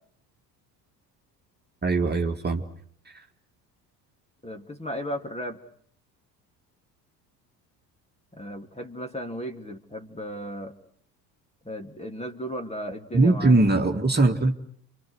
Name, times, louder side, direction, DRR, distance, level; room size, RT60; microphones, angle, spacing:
voice 1, 1.8-2.6 13.1-14.5, right 2 dB, 20° right, 2 dB, 2.4 m, -21 dB
voice 2, 4.4-5.6 8.3-10.7 11.6-13.6, equal, 15° left, 6 dB, 2.7 m, -35 dB
29.5 x 25.0 x 6.5 m, 0.62 s
hypercardioid pair, 65°, 49 cm